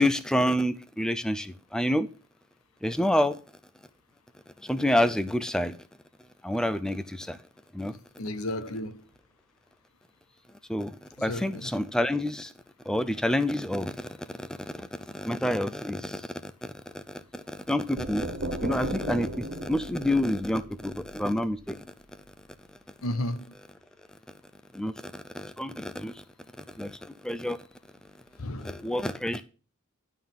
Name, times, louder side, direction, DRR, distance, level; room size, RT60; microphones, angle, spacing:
voice 1, 0.0-2.1 2.8-3.4 4.6-5.7 6.4-7.4 7.7-8.0 10.7-12.5 12.9-14.1 14.3-14.9 15.1-21.8 24.7-26.1 26.8-27.6 28.6-29.4, left 1 dB, 5° left, 0.4 m, -28 dB
voice 2, 8.2-9.0 11.2-11.7 23.0-23.5 28.4-28.8, left 1 dB, 80° left, 0.9 m, -33 dB
sound 1, 18.0-21.7, right 1 dB, 55° right, 1.3 m, -36 dB
11.5 x 3.8 x 7.1 m
head